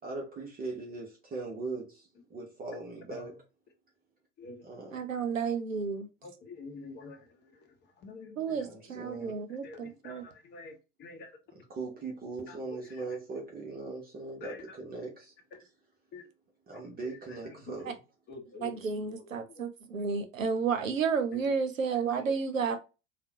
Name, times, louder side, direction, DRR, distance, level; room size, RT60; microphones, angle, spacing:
voice 1, 0.0-3.3 4.6-5.0 8.5-9.4 11.5-15.3 16.7-18.0, right 3 dB, 25° right, 0.8 m, -40 dB
voice 2, 4.4-4.8 6.2-8.9 9.2-11.4 12.5-13.2 14.4-14.8 16.1-16.2 16.7-17.8 18.3-19.6 21.3-21.6 22.1-22.8, left 3 dB, 25° left, 0.8 m, -49 dB
voice 3, 4.9-6.1 8.4-10.2 18.6-22.8, right 5 dB, 85° right, 0.6 m, -31 dB
3.5 x 2.2 x 2.7 m
figure-of-eight pair, 80°, 39 cm